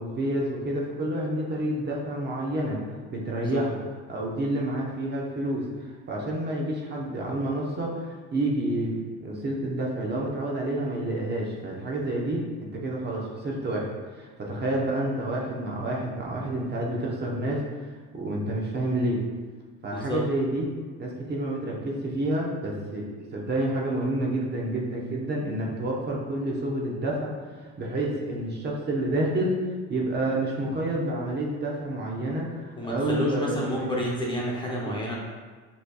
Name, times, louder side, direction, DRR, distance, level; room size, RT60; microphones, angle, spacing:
voice 1, 0.0-2.8 3.1-3.8 4.1-17.6 18.1-19.2 19.8-20.7 21.0-23.1 23.3-29.6 29.9-33.9 34.9-35.0, right 1 dB, 35° right, -3 dB, 0.9 m, -29 dB
voice 2, 19.9-20.2 32.7-35.2, equal, 15° left, -4 dB, 0.7 m, -29 dB
6.6 x 3.3 x 2.3 m, 1.4 s
cardioid pair, 110°, 31 cm